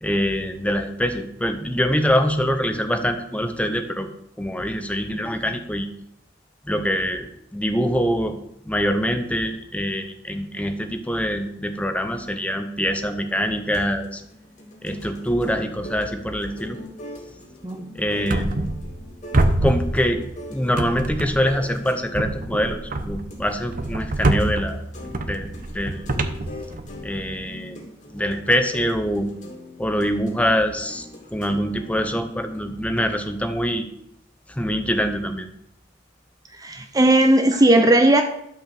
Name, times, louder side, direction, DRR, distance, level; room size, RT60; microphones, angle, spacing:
voice 1, 0.0-4.1 4.4-5.9 6.6-8.4 8.7-14.2 14.8-16.8 17.9-18.7 19.6-20.2 20.5-24.8 25.3-26.0 27.0-29.3 29.8-31.1 31.3-33.9 34.5-35.4, equal, 5° left, 7 dB, 0.8 m, -24 dB
sound 1, 13.0-32.9, left 1 dB, 40° left, 2.4 m, -42 dB
sound 2, 18.3-19.1 19.3-20.4 20.8-21.6 22.1-27.2, right 2 dB, 45° right, 0.8 m, -25 dB
voice 2, 36.6-38.2, right 1 dB, 20° right, 6 dB, 0.5 m, -16 dB
12.5 x 5.3 x 6.7 m, 0.79 s
head